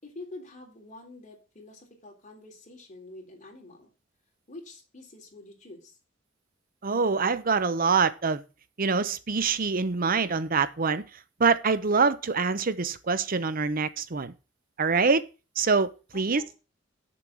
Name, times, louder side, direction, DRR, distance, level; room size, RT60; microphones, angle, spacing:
voice 1, 0.0-3.9 4.5-6.0 16.1-16.5, left 2 dB, 40° left, 3.7 m, -46 dB
voice 2, 6.8-8.4 8.8-11.0 11.4-14.3 14.8-15.3 15.6-16.5, right 4 dB, 50° right, 0.8 m, -25 dB
8.7 x 7.0 x 6.3 m
head